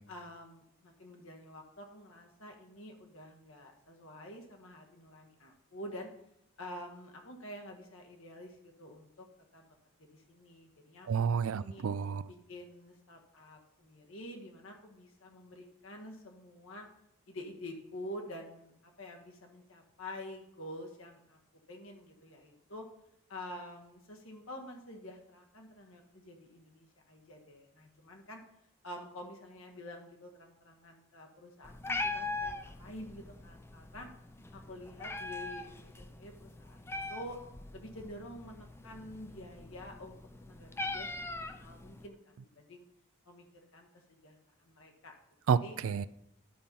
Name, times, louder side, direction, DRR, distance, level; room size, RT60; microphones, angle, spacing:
voice 1, 0.1-6.1 6.6-9.3 9.5-9.7 10.0-11.8 12.5-16.9 17.3-21.4 21.7-22.9 23.3-28.4 28.8-34.1 34.5-37.4 37.7-42.8 43.2-43.5 43.7-45.1 45.6-45.7, left 1 dB, 75° left, 2 dB, 1.5 m, -48 dB
voice 2, 11.1-12.3 45.5-46.1, right 6 dB, 75° right, 17 dB, 0.4 m, -30 dB
Meow, 31.6-42.1, left 2 dB, 10° left, 0.4 m, -41 dB
11.0 x 4.3 x 5.4 m, 0.78 s
head